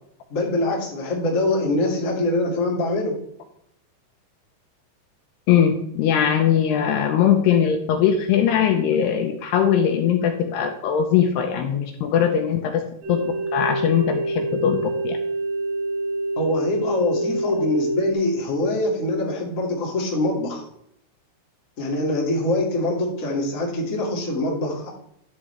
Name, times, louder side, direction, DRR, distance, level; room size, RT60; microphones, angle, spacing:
voice 1, 0.3-3.1 16.4-20.6 21.8-24.9, left 2 dB, 25° left, -3 dB, 1.7 m, -24 dB
voice 2, 5.5-13.2 13.5-15.2, left 8 dB, 80° left, 4 dB, 2.7 m, -20 dB
sound 1, 13.0-18.1, right 1 dB, 55° right, 1.7 m, -26 dB
11.0 x 8.5 x 3.4 m, 0.73 s
omnidirectional pair, 5.2 m